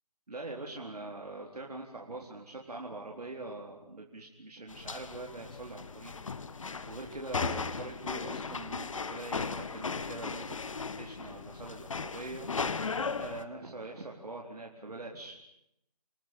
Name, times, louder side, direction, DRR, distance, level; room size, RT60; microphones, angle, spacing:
voice 1, 0.3-6.1 6.9-10.6 11.0-12.5 13.1-15.4, right 2 dB, 75° right, 0 dB, 4.1 m, -43 dB
sound 1, 4.7-13.4, left 4 dB, 55° left, 1.6 m, -37 dB
28.5 x 19.0 x 9.0 m, 0.81 s
figure-of-eight pair, 155°, 20 cm